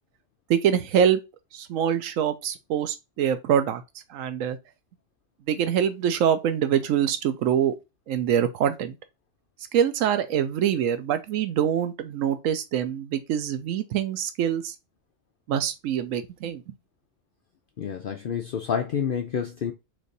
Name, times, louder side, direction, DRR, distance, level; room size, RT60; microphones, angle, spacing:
voice 1, 0.5-1.2 1.5-3.8 4.1-4.6 5.5-7.7 8.1-9.0 9.7-14.7 15.5-16.7, right 9 dB, 85° right, 1.0 m, -24 dB
voice 2, 17.8-19.7, left 7 dB, 60° left, 0.6 m, -28 dB
3.3 x 3.2 x 3.9 m
omnidirectional pair, 1.3 m